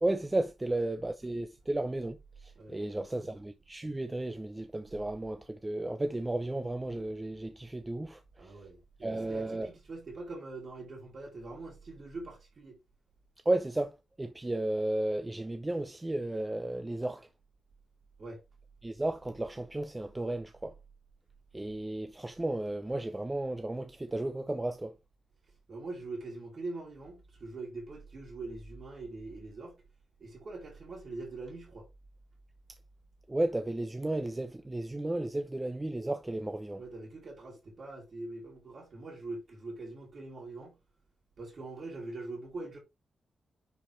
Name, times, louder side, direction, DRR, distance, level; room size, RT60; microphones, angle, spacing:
voice 1, 0.0-8.6 9.0-9.7 13.4-17.3 18.8-20.8 21.5-24.9 33.3-36.8, right 1 dB, 15° right, 0.6 m, -33 dB
voice 2, 2.6-3.3 8.4-12.8 18.2-18.4 25.7-29.8 30.2-31.9 36.8-40.8 41.4-42.8, right 2 dB, 45° right, 2.7 m, -43 dB
10.0 x 4.7 x 3.2 m
wide cardioid pair, 145°, 0 cm